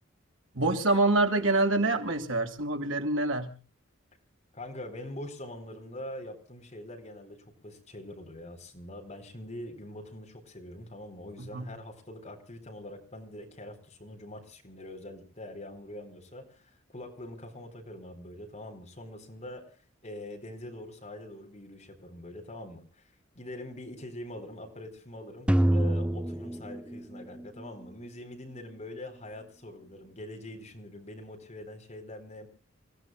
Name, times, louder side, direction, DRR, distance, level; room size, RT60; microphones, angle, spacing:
voice 1, 0.5-3.5 11.4-11.7, right 2 dB, 80° right, 5 dB, 2.9 m, -26 dB
voice 2, 4.5-19.8 20.0-32.5, left 1 dB, 35° left, 3 dB, 4.2 m, -44 dB
sound 1, 25.5-27.6, right 1 dB, 5° right, 0.8 m, -26 dB
29.5 x 16.5 x 2.4 m, 0.36 s
head